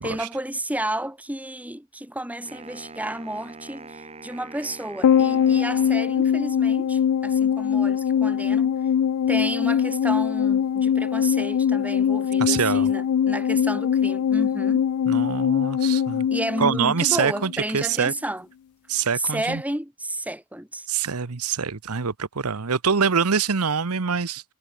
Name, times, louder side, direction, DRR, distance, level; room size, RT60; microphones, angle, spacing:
voice 1, 0.0-8.7 9.3-14.8 16.3-18.5 19.1-20.9, right 1 dB, 5° right, 3.2 m, -32 dB
Wind instrument woodwind instrument, 2.5-6.7, right 3 dB, 30° right, 6.2 m, -44 dB
sound 1, 5.0-17.6 17.8-17.9, left 8 dB, 80° left, 0.3 m, -22 dB
voice 2, 12.4-12.9 15.1-16.3 16.6-18.1 18.9-19.6 20.9-24.4, right 6 dB, 90° right, 1.0 m, -24 dB
head